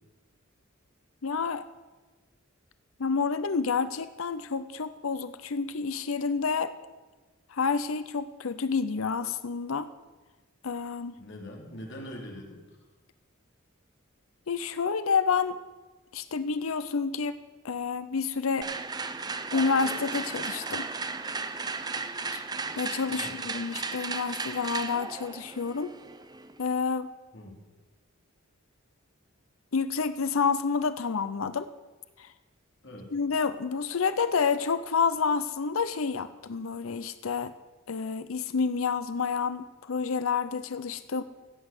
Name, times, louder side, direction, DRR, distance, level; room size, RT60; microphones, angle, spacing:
voice 1, 1.2-1.6 3.0-6.7 7.5-9.9 10.6-11.1 14.5-15.6 16.1-17.4 17.6-18.7 19.5-20.9 22.3-22.4 22.8-25.9 26.6-27.1 29.7-31.7 32.2-32.3 33.1-37.5 37.9-41.2, left 5 dB, 80° left, 13 dB, 0.6 m, -29 dB
voice 2, 11.2-12.6 23.1-23.3 27.3-27.6 32.8-33.1, equal, 60° left, 0 dB, 2.8 m, -42 dB
sound 1, 18.6-26.6, right 4 dB, 20° right, 0.6 m, -35 dB
15.5 x 8.3 x 6.7 m, 1.2 s
head